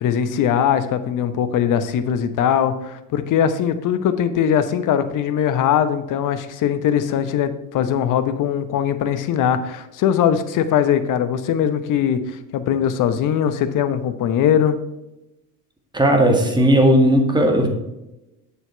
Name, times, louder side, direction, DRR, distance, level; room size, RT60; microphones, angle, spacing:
voice 1, 0.0-14.8, left 9 dB, 40° left, 11 dB, 0.9 m, -20 dB
voice 2, 15.9-17.7, right 1 dB, 10° right, 3 dB, 1.8 m, -15 dB
7.3 x 6.8 x 4.5 m, 0.94 s
hypercardioid pair, 65°, 47 cm